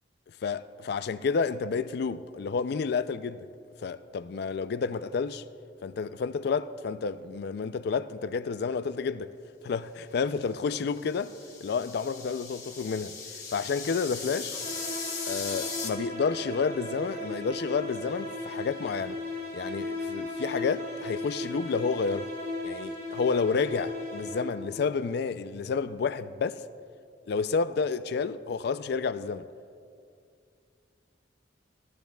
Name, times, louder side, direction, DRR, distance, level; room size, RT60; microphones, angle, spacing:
voice 1, 0.4-3.5 3.8-5.4 5.8-9.3 9.6-11.3 11.6-13.1 13.5-14.6 15.2-19.2 19.5-22.3 22.6-26.6 27.3-29.4, left 5 dB, 60° left, 0.4 m, -30 dB
sound 1, 10.8-15.9, left 5 dB, 20° left, 1.4 m, -38 dB
sound 2, 14.5-24.7, left 1 dB, 50° right, 2.8 m, -37 dB
17.5 x 14.0 x 2.3 m
head